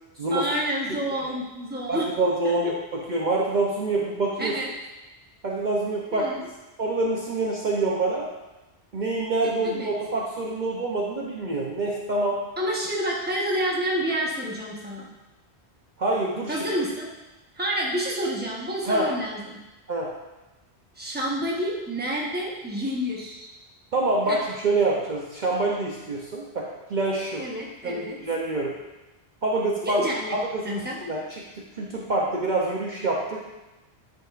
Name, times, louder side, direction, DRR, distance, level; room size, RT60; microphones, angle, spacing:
voice 1, 0.3-2.1 2.4-2.7 4.4-4.7 6.1-6.5 9.6-9.9 12.6-15.1 16.5-17.1 17.5-19.6 21.0-23.5 24.3-24.4 27.4-28.2 29.8-30.4 30.6-31.0, equal, 10° right, -3 dB, 1.0 m, -29 dB
voice 2, 1.9-4.5 5.4-6.3 6.8-8.3 8.9-12.4 16.0-16.6 18.8-19.1 19.9-20.1 23.9-27.4 27.8-28.7 29.4-30.0 30.5-33.4, right 2 dB, 50° right, -3 dB, 0.8 m, -26 dB
9.0 x 5.1 x 2.5 m, 1.1 s
omnidirectional pair, 1.1 m